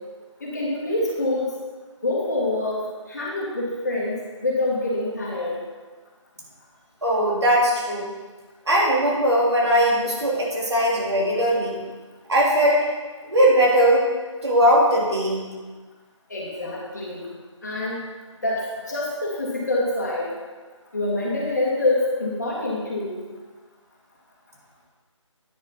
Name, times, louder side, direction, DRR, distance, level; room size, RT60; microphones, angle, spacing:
voice 1, 0.4-1.5 2.0-2.8 3.1-5.6 16.3-17.3 17.6-18.0 18.4-18.6 18.9-20.3 20.9-23.2, left 2 dB, 35° left, -4 dB, 2.1 m, -26 dB
voice 2, 7.0-8.1 8.7-11.8 12.3-12.9 13.2-14.0 14.4-15.4, equal, 60° right, -4 dB, 3.2 m, -19 dB
9.7 x 7.4 x 4.5 m, 1.3 s
figure-of-eight pair, 175°, 16 cm